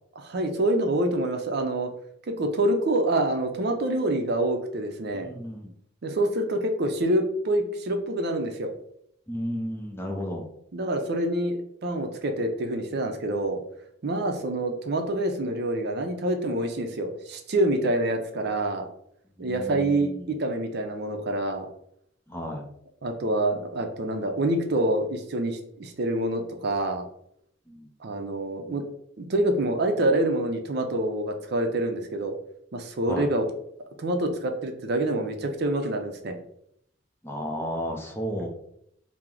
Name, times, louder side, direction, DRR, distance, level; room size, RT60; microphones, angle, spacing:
voice 1, 0.2-1.9 2.3-5.3 6.0-8.7 10.7-13.6 14.0-18.9 19.4-21.7 23.0-27.0 28.0-28.8 29.2-32.4 32.7-33.5 34.0-36.4, right 1 dB, 55° right, 5 dB, 0.5 m, -26 dB
voice 2, 5.2-5.7 9.3-10.4 19.4-20.3 22.3-22.6 27.7-27.9 33.1-33.3 37.2-38.5, equal, 10° left, 1 dB, 0.5 m, -33 dB
4.4 x 2.0 x 3.7 m, 0.72 s
head